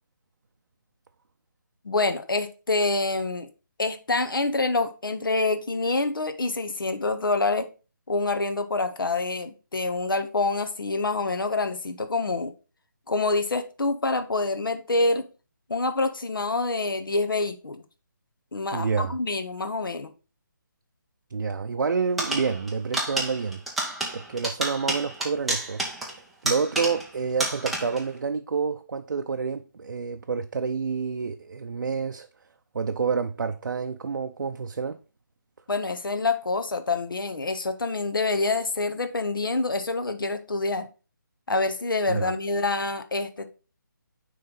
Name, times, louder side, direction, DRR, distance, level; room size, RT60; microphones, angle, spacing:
voice 1, 1.8-3.5 3.8-7.7 8.1-12.5 13.1-15.3 15.7-17.8 18.5-20.1 35.7-40.9 41.5-43.5, left 3 dB, 90° left, 1.0 m, -26 dB
voice 2, 18.7-19.2 21.3-23.6 24.1-25.8 26.4-32.3 32.7-35.0 42.1-42.3, right 5 dB, 75° right, 0.5 m, -28 dB
sound 1, 22.2-27.1 27.4-28.1, right 2 dB, ahead, 0.3 m, -30 dB
9.3 x 3.3 x 3.9 m
hypercardioid pair, 165°, 11 cm